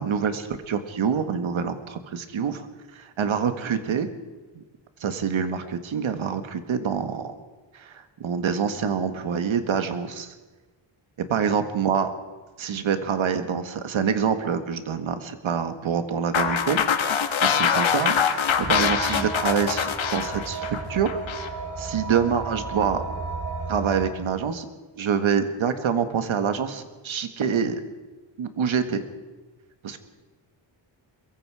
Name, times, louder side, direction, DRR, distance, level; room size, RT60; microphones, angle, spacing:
voice 1, 0.0-2.7 2.9-4.1 4.5-4.6 5.0-7.4 7.7-10.3 11.3-12.1 12.6-16.8 17.4-21.1 21.8-23.0 23.7-24.7 25.0-27.8 28.4-29.0 29.8-30.0, right 7 dB, 85° right, 8 dB, 1.9 m, -26 dB
sound 1, 16.3-21.5, left 7 dB, 75° left, 1.5 m, -24 dB
sound 2, 18.6-24.1, right 3 dB, 35° right, 3.5 m, -34 dB
23.0 x 23.0 x 4.9 m, 1.2 s
wide cardioid pair, 135°, 47 cm